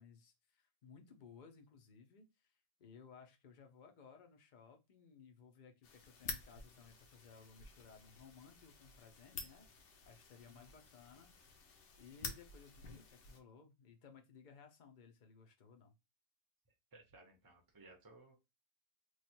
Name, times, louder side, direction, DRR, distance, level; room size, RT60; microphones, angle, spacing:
voice 1, 0.0-11.3 12.0-15.9, left 6 dB, 45° left, 5 dB, 0.7 m, -60 dB
sound 1, 5.8-13.4, left 4 dB, 65° left, 1.0 m, -51 dB
voice 2, 16.9-18.4, right 2 dB, 20° right, 1 dB, 0.6 m, -60 dB
3.1 x 2.4 x 4.3 m, 0.25 s
omnidirectional pair, 1.4 m